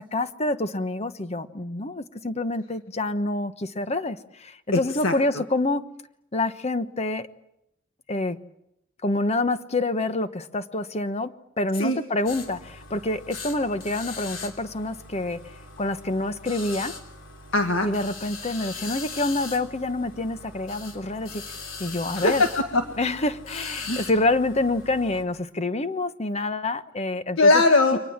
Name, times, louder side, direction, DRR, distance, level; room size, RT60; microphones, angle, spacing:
voice 1, 0.0-5.8 6.3-7.3 8.1-8.4 9.0-11.3 11.6-15.4 15.8-17.0 17.8-21.4 21.8-22.4 23.0-27.6, left 2 dB, 35° left, 11 dB, 1.1 m, -27 dB
voice 2, 4.7-5.1 11.7-12.0 17.5-17.9 22.1-22.8 23.9-24.0 27.4-28.0, left 2 dB, 90° left, 5 dB, 1.7 m, -20 dB
sound 1, 12.3-25.2, left 4 dB, 75° left, 3.5 m, -40 dB
29.5 x 24.5 x 7.4 m, 0.82 s
head